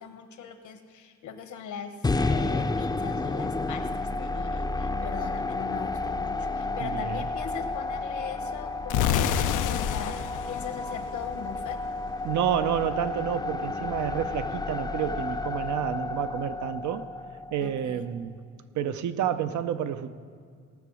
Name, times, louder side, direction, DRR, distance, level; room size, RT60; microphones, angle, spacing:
voice 1, 0.0-2.0 2.3-9.4 9.8-10.2 10.5-11.8 17.6-18.1, left 7 dB, 70° left, 7 dB, 1.3 m, -40 dB
sound 1, 2.0-18.2, left 3 dB, 15° left, 0.5 m, -31 dB
voice 2, 6.8-7.3 12.2-17.1 17.5-18.4 18.7-20.1, right 9 dB, 75° right, 11 dB, 0.7 m, -29 dB
sound 2, 8.9-11.8, left 9 dB, 90° left, 0.6 m, -28 dB
18.0 x 6.9 x 6.3 m, 2.1 s
cardioid pair, 90°, 30 cm